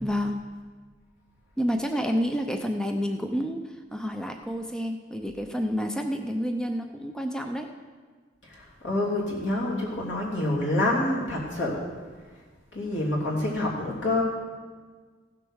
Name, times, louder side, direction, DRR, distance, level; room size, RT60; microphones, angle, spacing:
voice 1, 0.0-0.4 1.6-7.7, equal, 5° left, 4 dB, 0.6 m, -29 dB
voice 2, 8.4-11.8 12.7-14.2, left 1 dB, 85° left, -4 dB, 3.2 m, -27 dB
15.5 x 6.8 x 6.4 m, 1.5 s
head